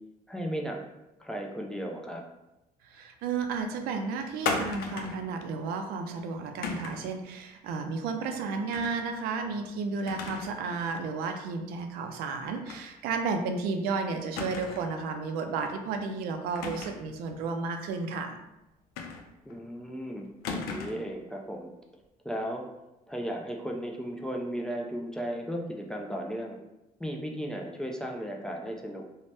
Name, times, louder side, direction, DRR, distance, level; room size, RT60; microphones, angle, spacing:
voice 1, 0.3-0.8 1.2-2.2 19.5-20.3 20.5-21.7 22.2-22.6 23.1-26.6 27.0-29.0, equal, 5° left, 0 dB, 0.3 m, -35 dB
voice 2, 2.8-18.4, right 4 dB, 90° right, 5 dB, 0.4 m, -32 dB
sound 1, 4.4-5.3 6.6-7.1 8.7-9.0 9.4-9.5 10.1-10.6 10.9-11.0 12.7-12.9 13.2-13.3 14.4-15.0 16.5-17.1 19.0-19.5 20.4-21.1, left 4 dB, 85° left, 0.4 m, -35 dB
2.6 x 2.1 x 3.3 m, 0.93 s
cardioid pair, 125°, 15 cm